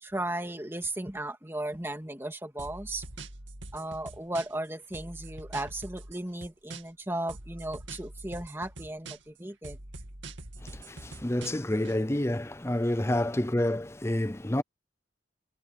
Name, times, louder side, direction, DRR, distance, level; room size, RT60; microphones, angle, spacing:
voice 1, 0.0-3.0 3.7-9.8, right 1 dB, 15° right, 2.5 m, -35 dB
sound 1, 2.6-4.7 4.9-7.0 7.3-9.4 9.6-11.9, right 2 dB, 75° right, 2.3 m, -44 dB
voice 2, 10.6-14.6, left 1 dB, 15° left, 0.7 m, -29 dB
head